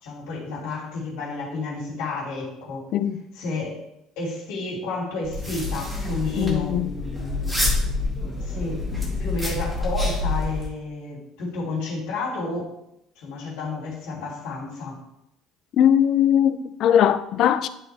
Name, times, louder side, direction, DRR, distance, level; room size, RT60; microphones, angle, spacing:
voice 1, 0.0-2.8 3.3-3.8 4.2-7.5 8.2-12.7 13.1-15.0, left 3 dB, 85° left, 3.1 m, -31 dB
voice 2, 2.9-3.2 6.4-6.9 15.8-17.7, left 9 dB, 50° left, 0.4 m, -20 dB
sound 1, 5.2-10.7, left 2 dB, 5° right, 1.9 m, -27 dB
11.0 x 4.3 x 3.4 m
cardioid pair, 150°, 0 cm